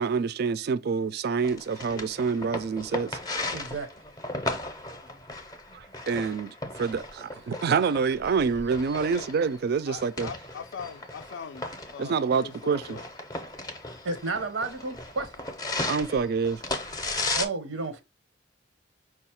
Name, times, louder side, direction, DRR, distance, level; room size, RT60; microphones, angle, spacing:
voice 1, 0.0-3.2 5.7-10.3 12.0-13.0 15.9-16.6, right 5 dB, 55° right, 0.3 m, -27 dB
sound 1, 1.4-17.4, left 2 dB, 20° left, 0.6 m, -36 dB
voice 2, 3.5-3.9 14.0-15.3 17.3-18.0, right 3 dB, 85° right, 0.7 m, -31 dB
voice 3, 9.9-11.6 11.9-13.1, left 7 dB, 65° left, 0.3 m, -41 dB
4.8 x 2.3 x 4.2 m
head